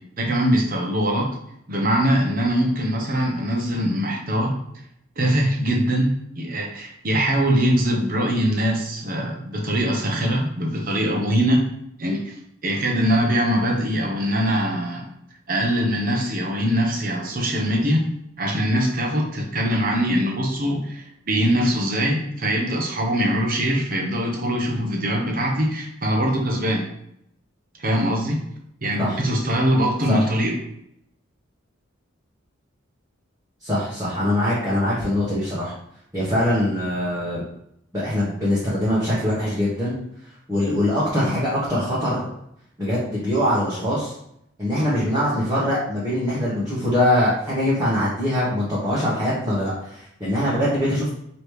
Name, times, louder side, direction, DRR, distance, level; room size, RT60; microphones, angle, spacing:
voice 1, 0.2-1.4 1.7-4.5 5.2-6.1 6.3-11.6 12.0-12.4 12.6-15.0 15.5-18.0 18.4-26.8 27.8-28.4 28.8-30.6, equal, 45° right, 1 dB, 0.8 m, -22 dB
voice 2, 33.6-35.7 36.1-37.4 37.9-40.0 40.5-42.3 42.8-44.1 44.6-51.1, left 1 dB, 15° right, -10 dB, 1.1 m, -22 dB
5.0 x 3.0 x 3.2 m, 0.75 s
head